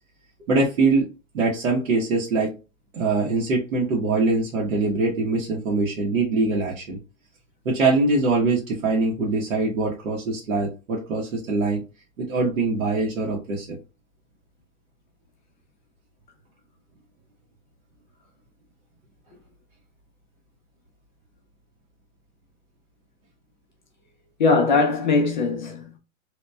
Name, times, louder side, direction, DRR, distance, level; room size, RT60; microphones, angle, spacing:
voice 1, 0.5-1.1 1.3-2.5 2.9-7.0 7.6-11.8 12.2-13.8, right 3 dB, 85° right, 1.0 m, -23 dB
voice 2, 24.4-26.0, left 3 dB, 40° left, 0.4 m, -21 dB
2.9 x 2.2 x 2.2 m
hypercardioid pair, 170°, 40 cm